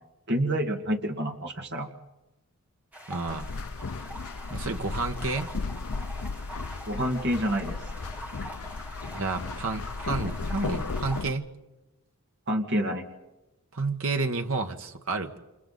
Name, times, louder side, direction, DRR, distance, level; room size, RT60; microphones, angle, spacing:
voice 1, 0.3-1.9 6.9-7.8 12.5-13.1, equal, 50° right, 3 dB, 2.0 m, -28 dB
sound 1, 2.9-11.2, equal, 5° right, 2.6 m, -43 dB
voice 2, 3.1-3.5 4.5-5.5 9.1-11.5 13.7-15.4, right 3 dB, 75° right, 5 dB, 1.6 m, -30 dB
sound 2, 3.3-11.3, left 4 dB, 80° left, 0.7 m, -35 dB
29.5 x 27.5 x 4.1 m, 1.0 s
head